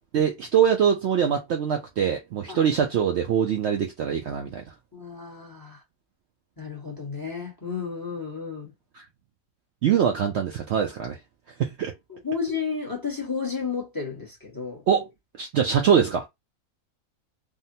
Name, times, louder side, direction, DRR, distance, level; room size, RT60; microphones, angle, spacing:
voice 1, 0.1-4.6 8.9-9.0 9.8-11.2 11.6-11.9 14.9-15.1 15.4-16.3, right 8 dB, 65° right, 0.7 m, -23 dB
voice 2, 4.9-5.8 6.6-8.7 12.1-14.8, left 5 dB, 15° left, 0.9 m, -32 dB
3.6 x 2.1 x 2.7 m
omnidirectional pair, 1.5 m